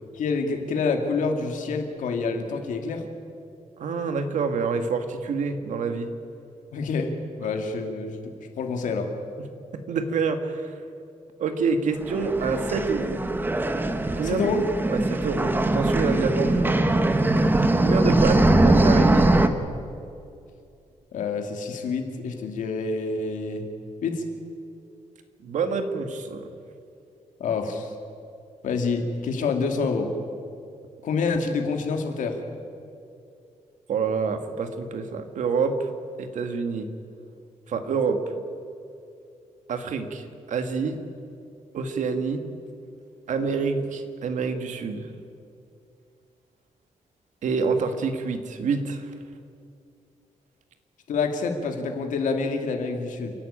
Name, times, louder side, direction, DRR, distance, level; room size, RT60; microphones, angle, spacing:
voice 1, 0.2-3.0 6.7-7.1 7.4-8.2 8.6-9.1 14.2-14.6 21.1-23.6 24.0-24.2 27.4-27.9 28.6-30.1 31.0-32.4 51.1-53.3, left 4 dB, 80° left, 4 dB, 2.7 m, -27 dB
voice 2, 3.8-6.1 9.4-9.5 9.7-10.8 11.4-13.2 14.2-14.4 14.9-16.8 17.8-19.3 25.4-26.5 33.9-35.9 36.2-36.9 37.7-38.2 39.7-41.0 41.7-42.4 43.3-45.1 47.4-49.1, right 5 dB, 70° right, 7 dB, 1.9 m, -27 dB
sound 1, 12.0-19.5, right 2 dB, 15° right, 1.2 m, -21 dB
29.5 x 11.5 x 8.9 m, 2.5 s
wide cardioid pair, 145°, 13 cm